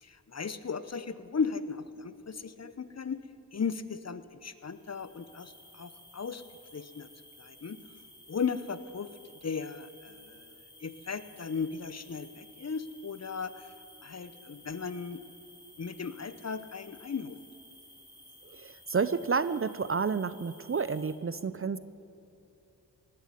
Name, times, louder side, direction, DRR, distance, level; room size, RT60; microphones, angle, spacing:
voice 1, 0.0-3.2 3.5-6.4 6.7-7.1 7.4-7.8 8.3-9.1 9.4-10.5 10.8-13.7 14.0-15.2 15.8-17.4, left 5 dB, 40° left, 13 dB, 0.8 m, -36 dB
sound 1, 4.6-21.1, left 1 dB, 10° left, 4.6 m, -55 dB
voice 2, 18.4-21.8, right 5 dB, 35° right, 15 dB, 0.5 m, -30 dB
18.0 x 7.7 x 9.9 m, 2.7 s
cardioid pair, 45°, 40 cm